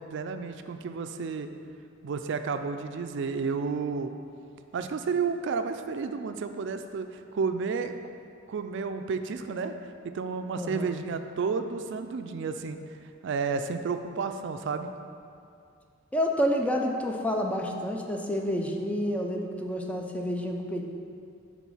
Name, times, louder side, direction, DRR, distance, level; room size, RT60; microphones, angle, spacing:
voice 1, 0.0-1.5 2.0-4.2 4.7-8.0 8.5-9.7 10.0-12.8 13.2-14.9, right 5 dB, 65° right, 8 dB, 0.4 m, -31 dB
voice 2, 10.6-11.0 16.1-20.8, equal, 5° left, 1 dB, 0.5 m, -29 dB
7.3 x 4.1 x 5.5 m, 2.4 s
head